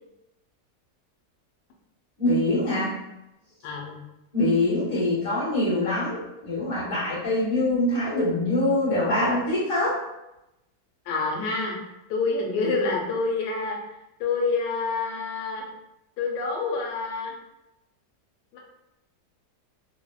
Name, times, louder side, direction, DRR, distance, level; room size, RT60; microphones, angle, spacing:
voice 1, 2.2-2.9 4.3-10.0, left 1 dB, 25° left, -9 dB, 0.9 m, -24 dB
voice 2, 3.6-4.0 11.1-11.8 12.1-13.8 14.2-15.6 16.2-17.3 18.5-18.6, left 3 dB, 90° left, 0 dB, 1.2 m, -27 dB
2.9 x 2.0 x 2.2 m, 0.90 s
omnidirectional pair, 1.8 m